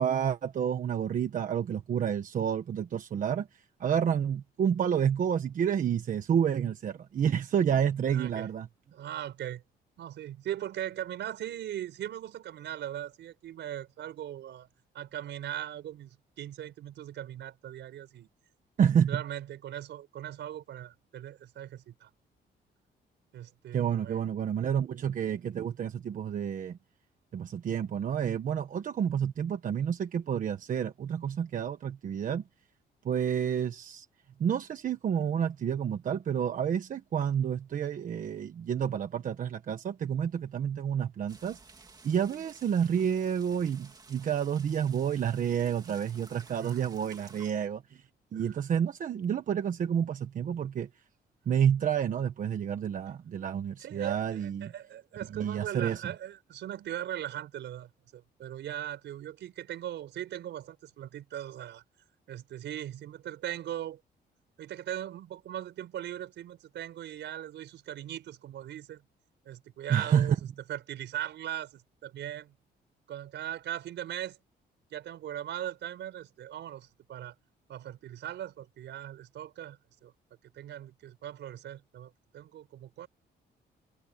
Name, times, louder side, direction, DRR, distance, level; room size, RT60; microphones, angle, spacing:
voice 1, 0.0-3.5 3.8-8.7 18.8-19.2 23.7-26.8 27.3-32.4 33.0-34.0 34.4-41.6 42.0-47.8 48.3-50.9 51.5-54.7 55.3-56.1 69.9-70.3, right 8 dB, 45° right, 1.3 m, -29 dB
voice 2, 8.1-8.5 8.9-9.6 10.0-14.7 14.9-18.3 19.1-22.1 23.3-24.2 46.6-47.0 48.3-48.6 53.8-61.8 62.3-64.0 64.6-69.0 69.5-70.4 70.7-72.5 73.1-74.4 74.9-77.4 77.7-80.1 80.5-83.1, right 11 dB, 80° right, 5.0 m, -39 dB
sound 1, 41.3-47.5, right 4 dB, 20° right, 2.6 m, -54 dB
cardioid pair, 180°, 18 cm